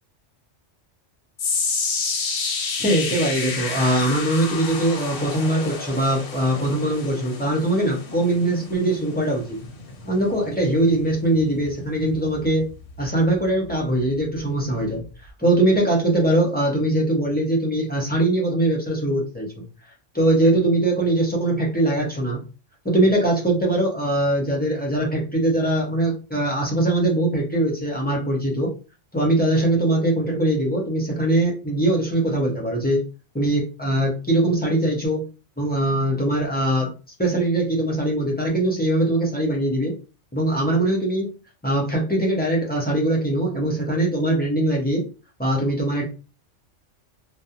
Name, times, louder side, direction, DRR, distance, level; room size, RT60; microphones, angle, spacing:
sound 1, 1.4-13.7 14.0-14.4 15.0-15.1, left 4 dB, 60° left, 0.7 m, -31 dB
voice 1, 2.8-9.6 10.0-12.6 13.0-15.0 15.4-19.6 20.1-22.4 22.8-28.7 29.1-33.0 33.3-35.2 35.6-36.9 37.2-39.9 40.3-41.3 41.6-45.0 45.4-46.1, right 1 dB, 15° left, -2 dB, 0.4 m, -21 dB
2.4 x 2.0 x 2.7 m, 0.32 s
omnidirectional pair, 1.2 m